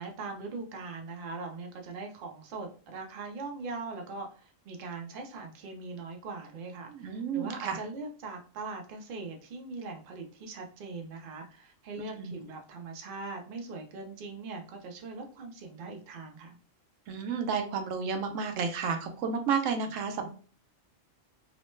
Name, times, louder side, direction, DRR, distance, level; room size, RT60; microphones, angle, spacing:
voice 1, 0.0-16.6, right 3 dB, 55° right, 3 dB, 0.7 m, -41 dB
voice 2, 6.9-7.8 12.0-12.3 17.1-20.3, right 6 dB, 85° right, 6 dB, 0.9 m, -31 dB
3.0 x 2.1 x 3.1 m, 0.40 s
omnidirectional pair, 1.3 m